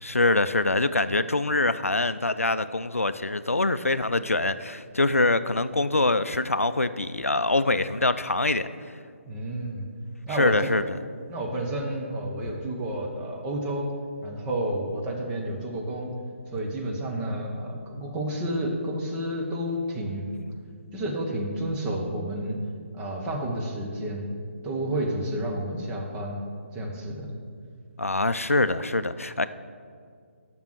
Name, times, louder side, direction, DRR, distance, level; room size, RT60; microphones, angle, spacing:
voice 1, 0.0-8.7 10.3-10.8 28.0-29.5, left 2 dB, 85° left, 13 dB, 0.4 m, -24 dB
voice 2, 9.3-9.9 10.3-10.7 11.3-13.9 14.2-16.1 16.5-20.3 20.9-22.6 22.9-24.3 24.6-26.4 26.7-27.3, right 1 dB, 15° right, -1 dB, 1.0 m, -30 dB
7.2 x 6.1 x 7.6 m, 2.1 s
figure-of-eight pair, 140°, 7 cm